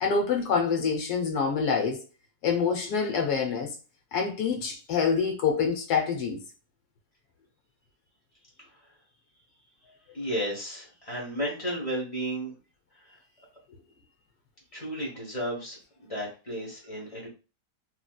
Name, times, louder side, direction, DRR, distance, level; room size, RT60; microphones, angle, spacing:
voice 1, 0.0-2.0 2.4-3.7 4.1-6.4, left 5 dB, 80° left, 1.3 m, -26 dB
voice 2, 10.1-12.5 13.1-13.2 14.7-17.3, equal, 25° left, 0.9 m, -33 dB
3.1 x 2.7 x 2.3 m
omnidirectional pair, 1.7 m